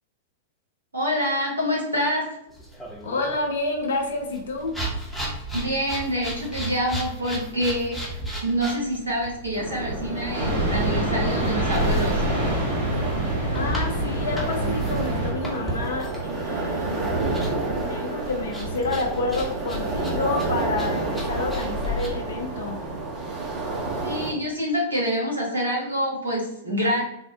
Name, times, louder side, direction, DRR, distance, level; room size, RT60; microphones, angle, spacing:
voice 1, 0.9-2.3 5.5-8.2 8.4-12.2 24.0-27.0, equal, 85° right, -4 dB, 1.1 m, -26 dB
sound 1, 2.5-22.1, right 1 dB, 5° left, 0.8 m, -37 dB
voice 2, 3.0-4.8 13.5-17.1 17.7-22.8, left 3 dB, 70° left, 3 dB, 0.4 m, -29 dB
sound 2, 9.6-24.3, right 2 dB, 30° right, 0.8 m, -30 dB
sound 3, 10.3-15.3, right 1 dB, 60° right, 1.4 m, -25 dB
3.4 x 2.0 x 2.7 m, 0.81 s
figure-of-eight pair, 100°, 0 cm